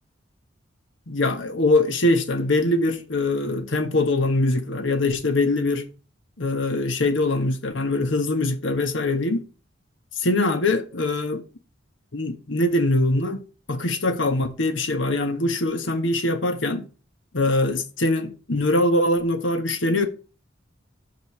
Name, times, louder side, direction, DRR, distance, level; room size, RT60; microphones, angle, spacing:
voice 1, 1.1-5.9 6.4-9.4 10.2-11.4 12.1-13.4 13.7-16.9 17.3-20.1, left 2 dB, 75° left, 1.3 m, -23 dB
6.3 x 5.3 x 6.3 m
head